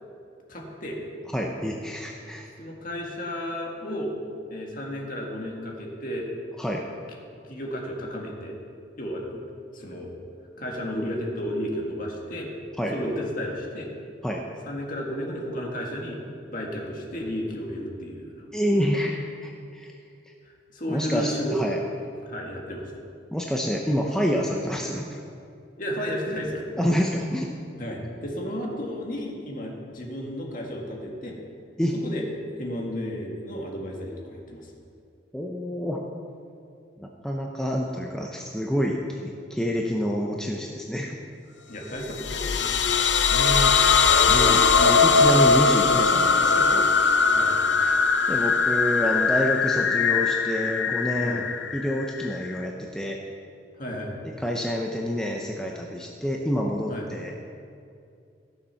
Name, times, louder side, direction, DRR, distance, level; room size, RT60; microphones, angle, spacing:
voice 1, 0.5-1.0 2.6-4.1 4.5-6.3 7.4-8.5 9.0-9.2 9.7-10.1 10.6-12.5 12.9-13.9 14.7-16.2 16.5-18.4 20.7-21.6 22.2-22.9 25.8-26.6 27.8-31.4 31.9-32.2 32.5-34.7 41.7-42.9 47.2-47.5 51.2-51.4 53.8-54.2 56.9-57.1, equal, 45° left, -1 dB, 1.9 m, -33 dB
voice 2, 1.3-2.5 6.6-6.8 12.8-12.9 14.2-14.4 18.5-19.9 20.9-21.8 23.3-25.2 26.8-27.5 31.8-32.0 35.3-36.0 37.0-41.2 43.3-43.8 44.3-46.9 47.8-48.0 48.3-51.4 51.7-53.2 54.2-57.3, equal, 5° left, -1 dB, 0.6 m, -28 dB
sound 1, 42.0-52.6, left 5 dB, 65° left, 0.6 m, -21 dB
14.5 x 7.0 x 5.7 m, 2.4 s
head